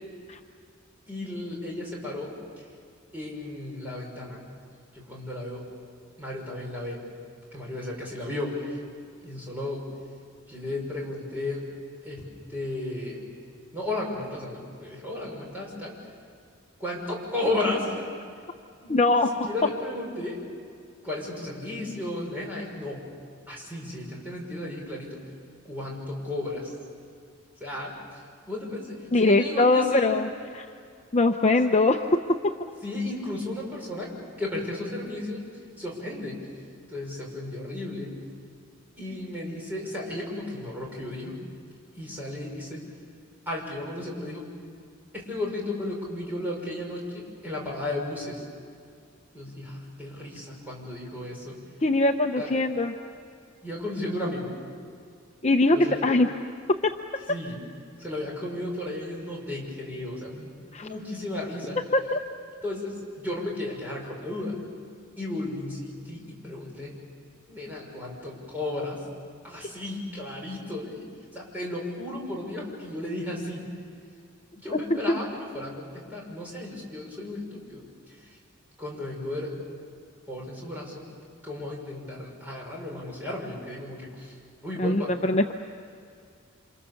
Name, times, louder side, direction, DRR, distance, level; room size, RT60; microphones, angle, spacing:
voice 1, 1.1-2.6 3.1-4.5 4.9-5.6 6.2-7.0 7.5-8.8 9.2-9.9 10.5-11.7 12.0-13.3 13.7-16.0 16.8-18.1 18.8-20.4 21.0-23.1 23.5-25.2 25.6-26.7 27.6-28.0 28.5-30.1 32.8-35.5 35.8-36.5 36.9-38.2 39.0-41.4 42.0-42.8 43.5-44.5 45.1-48.4 49.3-51.6 52.4-52.5 53.6-54.6 55.7-56.0 57.3-57.6 58.0-60.5 60.8-61.8 62.6-64.6 65.2-67.0 67.5-69.0 69.4-71.0 71.3-73.7 74.5-78.3 78.8-79.6 80.3-81.0 81.4-84.3 84.6-85.1, left 1 dB, 10° right, -3 dB, 6.1 m, -34 dB
voice 2, 18.9-19.3 29.1-30.3 30.5-30.6 31.1-32.1 51.8-52.9 55.4-56.3 60.7-60.9 61.9-62.2 74.7-74.8 75.1-75.2 84.8-85.5, left 2 dB, 30° left, 4 dB, 0.7 m, -22 dB
28.5 x 27.0 x 7.1 m, 2.3 s
head